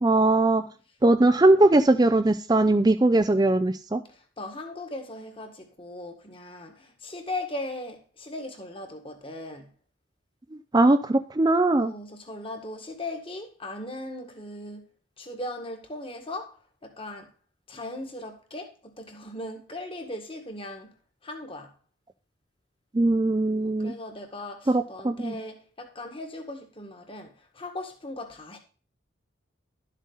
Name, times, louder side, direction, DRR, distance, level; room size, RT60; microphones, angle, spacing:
voice 1, 0.0-0.6 1.0-4.0 10.7-11.9 22.9-23.9 24.7-25.4, right 2 dB, 20° right, 0.5 m, -20 dB
voice 2, 4.1-9.7 11.8-14.9 15.2-17.3 17.7-20.9 21.2-21.7 23.6-28.6, left 1 dB, 25° left, 1.8 m, -38 dB
12.0 x 7.5 x 4.0 m
head